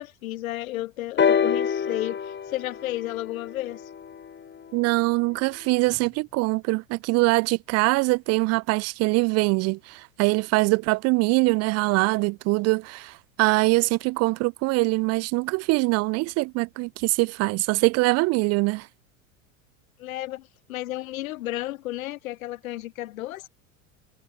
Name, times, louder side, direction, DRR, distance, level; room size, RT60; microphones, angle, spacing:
voice 1, 0.0-3.8 20.0-23.5, left 16 dB, 75° left, 4.2 m, -33 dB
sound 1, 1.2-5.0 5.9-6.0, left 7 dB, 25° left, 3.0 m, -27 dB
voice 2, 4.7-18.9, right 24 dB, 40° right, 0.4 m, -23 dB
hypercardioid pair, 85°, 42 cm